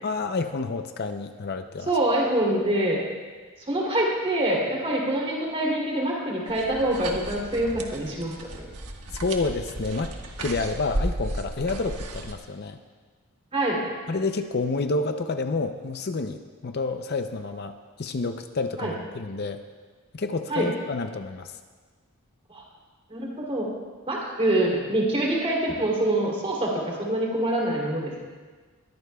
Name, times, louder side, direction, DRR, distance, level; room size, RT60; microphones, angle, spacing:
voice 1, 0.0-1.9 9.1-12.8 14.1-19.6 20.1-21.6, left 3 dB, 45° left, 7 dB, 0.5 m, -29 dB
voice 2, 1.9-3.0 3.6-8.7 13.5-13.8 18.8-18.9 20.5-20.7 22.5-22.6 23.1-23.7 24.1-28.1, right 1 dB, 25° right, -3 dB, 2.9 m, -25 dB
sound 1, 6.5-12.3, right 1 dB, 85° right, 1.4 m, -34 dB
21.5 x 14.0 x 2.3 m, 1.4 s
head